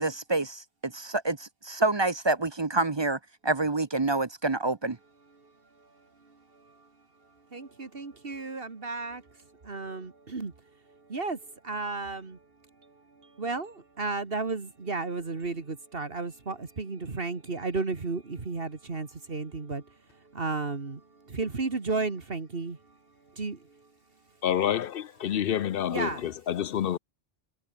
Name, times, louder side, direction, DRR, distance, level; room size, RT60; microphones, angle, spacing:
voice 1, 0.0-5.0, right 2 dB, 30° right, 0.8 m, -28 dB
voice 2, 5.4-6.9 7.5-10.5 10.9-12.5 12.8-23.0 23.2-23.9 25.9-26.3, right 3 dB, 65° right, 2.2 m, -34 dB
voice 3, 24.4-27.0, left 10 dB, 65° left, 0.8 m, -28 dB
omnidirectional pair, 1.1 m